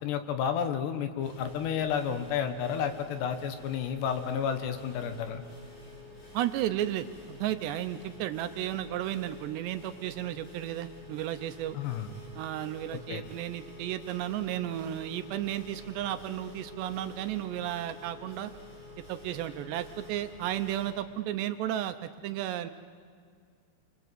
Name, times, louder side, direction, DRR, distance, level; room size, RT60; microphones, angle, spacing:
voice 1, 0.0-5.4 11.7-12.1 12.9-13.2, left 8 dB, 70° left, 8 dB, 3.3 m, -31 dB
sound 1, 1.2-20.9, left 2 dB, 45° left, 8.3 m, -49 dB
voice 2, 6.3-11.8 12.4-18.5 19.1-22.7, right 12 dB, 75° right, 10 dB, 2.8 m, -33 dB
30.0 x 24.0 x 8.1 m, 2.1 s
omnidirectional pair, 5.3 m